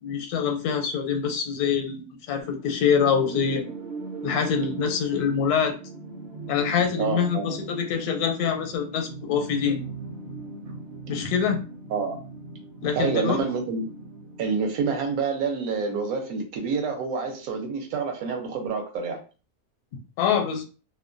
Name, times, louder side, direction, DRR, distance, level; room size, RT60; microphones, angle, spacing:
voice 1, 0.0-3.6 4.2-5.8 6.5-9.8 11.1-11.6 12.8-13.4 20.2-20.6, left 7 dB, 85° left, 1.1 m, -25 dB
sound 1, 2.4-14.4, right 4 dB, 55° right, 0.7 m, -39 dB
voice 2, 7.0-7.6 11.9-12.2 13.0-13.9 14.4-19.2, right 5 dB, 75° right, 1.0 m, -27 dB
2.7 x 2.2 x 2.4 m
omnidirectional pair, 1.6 m